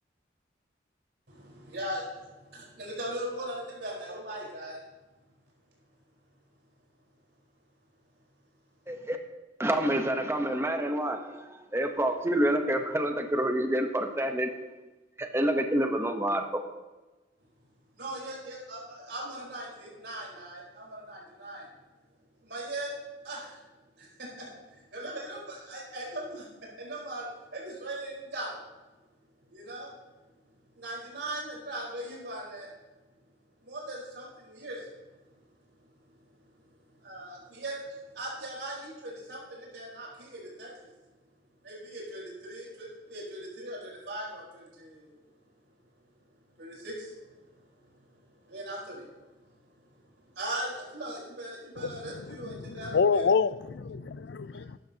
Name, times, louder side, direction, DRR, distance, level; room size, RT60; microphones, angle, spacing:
voice 1, 1.3-4.8 17.9-21.7 22.4-22.9 23.2-23.6 24.0-26.4 26.8-28.6 29.5-29.9 30.7-32.7 33.6-34.9 36.4-36.5 37.0-40.9 41.6-45.1 46.6-47.7 48.1-49.1 49.3-49.9 50.1-53.2, right 1 dB, 75° right, 4.4 m, -39 dB
voice 2, 8.9-9.2 9.6-14.5 15.2-16.6, right 1 dB, 15° right, 0.9 m, -28 dB
voice 3, 51.8-54.8, left 5 dB, 70° left, 0.4 m, -28 dB
15.0 x 12.0 x 2.9 m
head